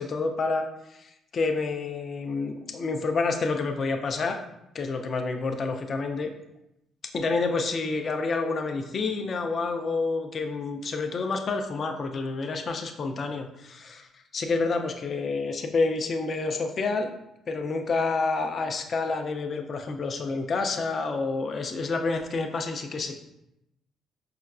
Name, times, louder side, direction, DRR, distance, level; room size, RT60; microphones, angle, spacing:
voice 1, 0.0-4.4 4.7-6.3 7.1-14.1 14.3-17.1 17.5-23.2, left 3 dB, 40° left, 5 dB, 0.4 m, -28 dB
5.5 x 2.3 x 2.4 m, 0.86 s
cardioid pair, 135°, 0 cm